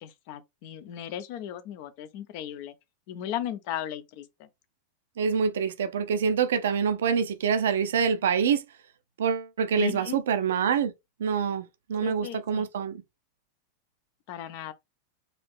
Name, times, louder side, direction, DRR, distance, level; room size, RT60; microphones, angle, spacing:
voice 1, 0.0-2.7 3.1-4.5 9.8-10.2 12.0-12.7 14.3-14.7, left 11 dB, 45° left, 0.6 m, -36 dB
voice 2, 5.2-8.6 9.2-10.9 11.2-13.0, right 6 dB, 60° right, 0.6 m, -26 dB
4.1 x 2.7 x 3.3 m
figure-of-eight pair, 90°, 0 cm